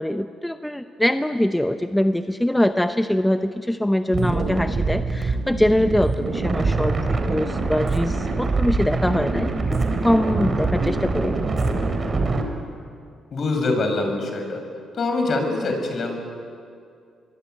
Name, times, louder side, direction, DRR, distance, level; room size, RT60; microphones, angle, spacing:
voice 1, 0.0-11.4, left 1 dB, 5° left, 8 dB, 0.8 m, -23 dB
sound 1, 4.1-12.4, right 3 dB, 35° right, 3.9 m, -24 dB
voice 2, 13.3-14.6 15.0-16.2, left 2 dB, 50° left, 4 dB, 6.2 m, -24 dB
25.0 x 22.0 x 9.2 m, 2.3 s
cardioid pair, 90°, 0 cm